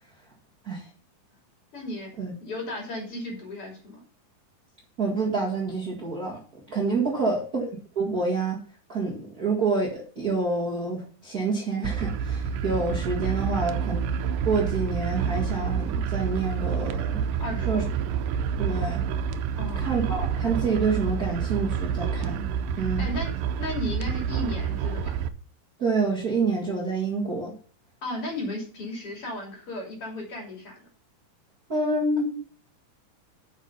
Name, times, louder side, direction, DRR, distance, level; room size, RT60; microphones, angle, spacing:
voice 1, 1.7-2.1 2.4-4.0 7.1-7.4 13.4-13.8 17.4-17.9 19.6-19.9 23.0-23.3 23.6-25.1 28.0-30.9, left 1 dB, 40° left, -1 dB, 3.7 m, -35 dB
voice 2, 5.0-6.4 6.7-8.6 8.9-14.0 14.4-17.2 17.7-17.8 18.6-19.0 19.8-22.5 22.8-23.0 25.8-27.5 31.7-32.4, right 3 dB, 35° right, -3 dB, 1.7 m, -27 dB
sound 1, 11.8-25.3, right 7 dB, 85° right, 2.4 m, -28 dB
9.2 x 6.5 x 5.6 m, 0.43 s
omnidirectional pair, 4.0 m